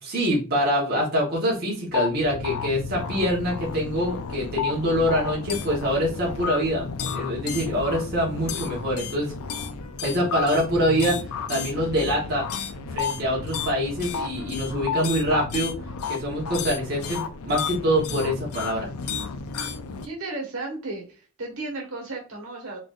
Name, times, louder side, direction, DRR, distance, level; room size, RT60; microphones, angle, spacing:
voice 1, 0.0-9.3 10.0-11.2 11.5-12.5 12.9-15.7 16.1-18.9, equal, 45° right, -4 dB, 1.2 m, -25 dB
sound 1, 1.9-20.1, left 6 dB, 90° left, 0.5 m, -32 dB
voice 2, 20.0-22.8, right 2 dB, 75° right, -1 dB, 1.4 m, -34 dB
4.0 x 3.3 x 2.5 m, 0.35 s
head